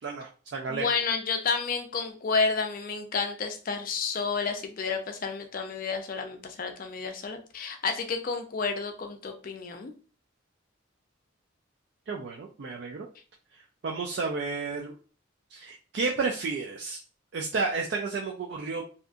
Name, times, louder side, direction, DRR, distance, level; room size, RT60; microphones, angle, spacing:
voice 1, 0.0-0.9 12.1-13.1 13.8-15.0 15.5-17.0 17.3-18.8, right 4 dB, 55° right, 0 dB, 0.3 m, -31 dB
voice 2, 0.7-9.9, left 5 dB, 40° left, 6 dB, 0.4 m, -30 dB
2.7 x 2.5 x 2.3 m, 0.39 s
head